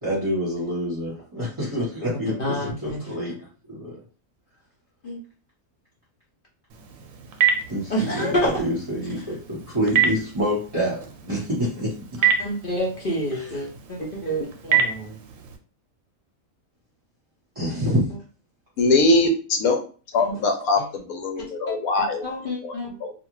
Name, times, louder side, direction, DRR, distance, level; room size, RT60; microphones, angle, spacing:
voice 1, 0.0-3.3 3.7-4.0 7.7-11.9 13.4-13.5 17.5-18.1, equal, 25° right, -7 dB, 1.0 m, -27 dB
voice 2, 2.4-3.0 5.0-5.2 7.9-8.6 12.4-15.2 20.2-20.4 21.7-23.0, equal, 55° left, -3 dB, 0.6 m, -28 dB
Telephone, 6.7-15.6, right 7 dB, 70° right, 0.9 m, -28 dB
voice 3, 18.8-19.8 20.1-22.4 22.6-23.1, left 2 dB, 75° left, 4 dB, 1.1 m, -22 dB
2.5 x 2.5 x 3.0 m, 0.37 s
omnidirectional pair, 1.6 m